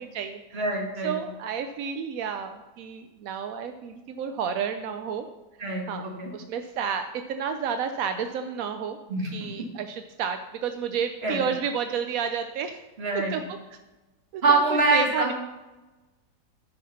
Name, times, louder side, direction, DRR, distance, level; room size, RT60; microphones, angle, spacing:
voice 1, 0.0-0.6 1.0-5.3 5.9-6.1 6.3-9.0 9.3-12.8 13.3-13.4 14.3-15.3, right 7 dB, 70° right, 7 dB, 0.8 m, -31 dB
voice 2, 0.5-1.2 5.6-6.3 9.1-9.7 11.2-11.4 13.0-13.4 14.4-15.3, right 3 dB, 35° right, 0 dB, 1.9 m, -25 dB
9.8 x 5.5 x 5.8 m, 1.1 s
omnidirectional pair, 1.9 m